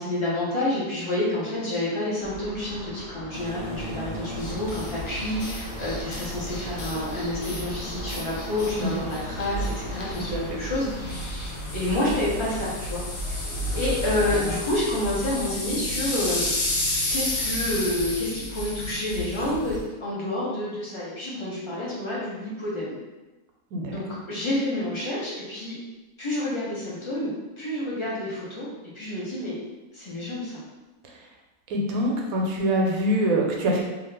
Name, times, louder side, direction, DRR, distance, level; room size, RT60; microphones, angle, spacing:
voice 1, 0.0-13.0 13.3-13.4 13.7-16.6 17.1-19.7 20.0-22.9 23.9-25.8 26.2-28.7 28.9-29.6 29.9-30.6, left 1 dB, 30° left, -8 dB, 0.6 m, -29 dB
sound 1, 2.2-14.6, equal, 55° left, 1.0 m, -37 dB
sound 2, 3.3-11.2, right 1 dB, 90° right, 0.3 m, -39 dB
sound 3, 4.3-19.9, left 1 dB, 85° left, 1.2 m, -32 dB
voice 2, 10.2-10.6 23.7-23.9 31.7-33.8, right 1 dB, 75° right, 0 dB, 1.1 m, -24 dB
2.8 x 2.4 x 3.2 m, 1.1 s
omnidirectional pair, 1.6 m